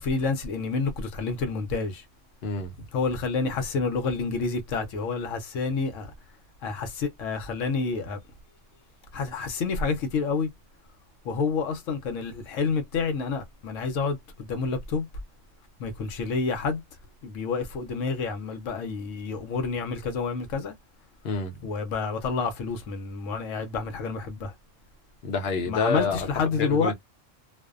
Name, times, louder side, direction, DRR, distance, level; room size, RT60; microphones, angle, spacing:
voice 1, 0.0-2.0 2.9-6.1 6.6-8.2 9.1-10.5 11.2-15.1 15.8-16.8 17.2-20.7 21.6-24.5 25.7-26.9, left 4 dB, 85° left, 1.0 m, -29 dB
voice 2, 2.4-2.7 21.2-21.6 25.2-26.3 26.6-26.9, left 4 dB, 60° left, 0.9 m, -27 dB
2.5 x 2.1 x 2.3 m
omnidirectional pair, 1.3 m